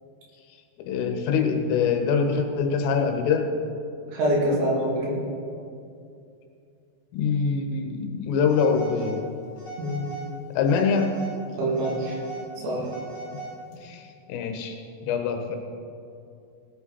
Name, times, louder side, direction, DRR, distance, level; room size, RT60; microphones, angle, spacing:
voice 1, 0.8-3.5 7.1-9.2 10.6-11.1 13.8-14.8 15.1-15.6, left 5 dB, 85° left, 4 dB, 3.7 m, -24 dB
voice 2, 4.1-5.2 9.8-10.1 11.6-12.2 12.6-12.8, right 1 dB, 70° right, -5 dB, 5.3 m, -25 dB
Telephone, 8.5-9.2 9.6-10.3 10.6-11.4 11.7-13.8, right 2 dB, 10° left, 1.8 m, -39 dB
17.5 x 10.0 x 4.3 m, 2.5 s
omnidirectional pair, 5.7 m